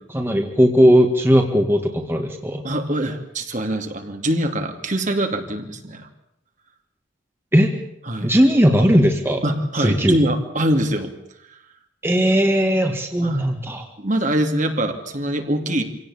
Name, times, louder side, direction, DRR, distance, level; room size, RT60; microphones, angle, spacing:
voice 1, 0.1-2.6 7.5-7.7 8.2-9.4 9.8-10.2 12.0-13.9, equal, 10° right, 3 dB, 2.0 m, -17 dB
voice 2, 2.6-6.1 8.1-8.3 9.4-11.1 13.2-13.4 14.0-15.8, right 1 dB, 40° right, 5 dB, 2.5 m, -23 dB
25.5 x 17.5 x 8.6 m, 0.78 s
head